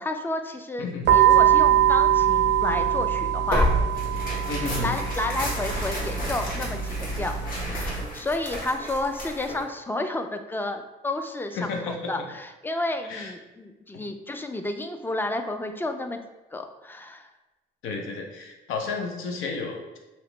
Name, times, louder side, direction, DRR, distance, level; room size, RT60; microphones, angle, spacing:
voice 1, 0.0-3.7 4.8-16.2 16.5-17.3, left 2 dB, 10° left, 6 dB, 0.3 m, -31 dB
sound 1, 1.0-8.0, right 10 dB, 60° right, 0.4 m, -23 dB
Tearing, 3.4-9.6, equal, 45° left, 1.3 m, -31 dB
voice 2, 4.5-4.9 11.5-12.3 13.0-13.3 17.8-20.0, left 4 dB, 85° left, 2 dB, 0.6 m, -32 dB
2.9 x 2.8 x 3.2 m, 1.1 s
cardioid pair, 90°, 20 cm